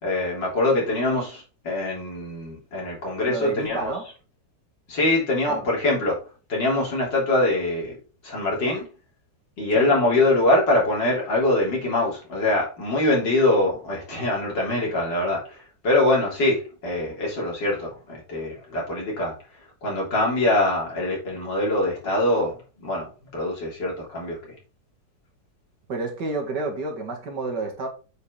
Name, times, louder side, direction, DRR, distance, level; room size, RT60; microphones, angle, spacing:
voice 1, 0.0-3.9 4.9-6.2 6.5-8.0 8.2-8.9 9.6-19.3 19.8-24.4, left 2 dB, 75° left, 4.0 m, -23 dB
voice 2, 3.3-4.1 5.5-5.7 9.7-9.9 25.9-27.9, right 3 dB, 70° right, 2.5 m, -30 dB
8.3 x 5.3 x 3.9 m
omnidirectional pair, 1.9 m